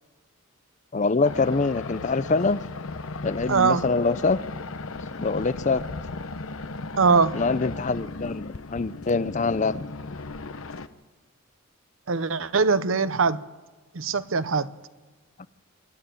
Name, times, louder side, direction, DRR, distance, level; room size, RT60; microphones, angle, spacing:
voice 1, 0.9-2.6 3.2-4.4 5.2-5.8 7.3-9.9, left 3 dB, 35° left, 0.5 m, -24 dB
sound 1, 1.2-10.9, left 3 dB, 70° left, 0.9 m, -36 dB
voice 2, 3.5-3.8 7.0-7.4 12.1-13.4 13.9-14.7, right 4 dB, 65° right, 0.8 m, -22 dB
25.5 x 12.0 x 8.9 m
head